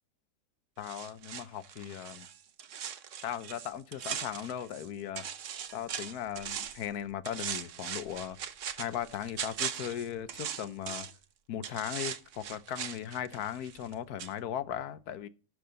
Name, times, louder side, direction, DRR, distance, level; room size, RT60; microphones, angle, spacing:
voice 1, 0.8-2.3 3.2-5.3 5.7-8.4 8.8-11.1 11.5-15.3, left 10 dB, 75° left, 1.2 m, -38 dB
sound 1, 0.8-4.9 5.2-6.9 7.3-11.2 11.6-13.9 14.2-14.3, right 8 dB, 60° right, 1.1 m, -40 dB
12.0 x 6.5 x 3.9 m
omnidirectional pair, 1.7 m